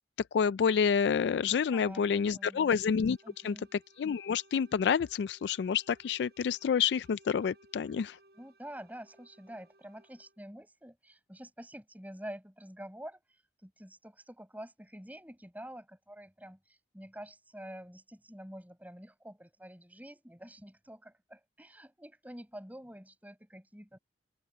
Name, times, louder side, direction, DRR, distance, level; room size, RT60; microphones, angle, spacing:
voice 1, 0.3-3.2 3.4-3.5 4.0-8.2, left 6 dB, 75° left, 0.3 m, -28 dB
voice 2, 1.7-2.8 3.2-3.7 8.4-24.0, equal, 10° right, 6.4 m, -48 dB
sound 1, 2.1-10.5, right 2 dB, 60° right, 7.7 m, -64 dB
open air
head